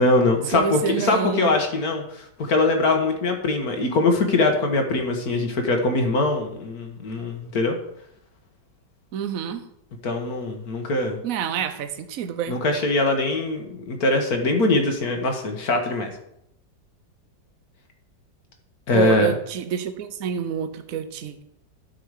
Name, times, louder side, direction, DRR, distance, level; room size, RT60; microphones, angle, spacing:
voice 1, 0.0-7.8 10.0-11.2 12.5-16.1 18.9-19.3, left 2 dB, 55° left, 4 dB, 1.7 m, -22 dB
voice 2, 0.5-1.6 9.1-9.7 11.2-12.6 18.9-21.4, right 8 dB, 55° right, 10 dB, 1.1 m, -27 dB
12.0 x 5.7 x 4.9 m, 0.77 s
omnidirectional pair, 2.0 m